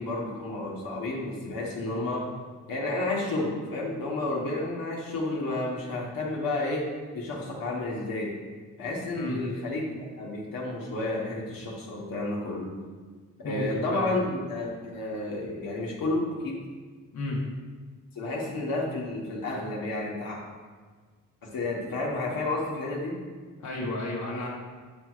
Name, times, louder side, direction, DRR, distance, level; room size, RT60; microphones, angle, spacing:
voice 1, 0.0-2.3 2.7-6.8 7.1-8.3 8.8-12.7 13.4-16.6 18.1-20.4 21.5-23.2, left 2 dB, 90° left, -3 dB, 1.2 m, -31 dB
voice 2, 13.4-14.1 17.1-17.4 23.6-24.5, left 1 dB, 55° left, -3 dB, 1.0 m, -32 dB
8.7 x 4.5 x 2.4 m, 1.5 s
wide cardioid pair, 165°, 33 cm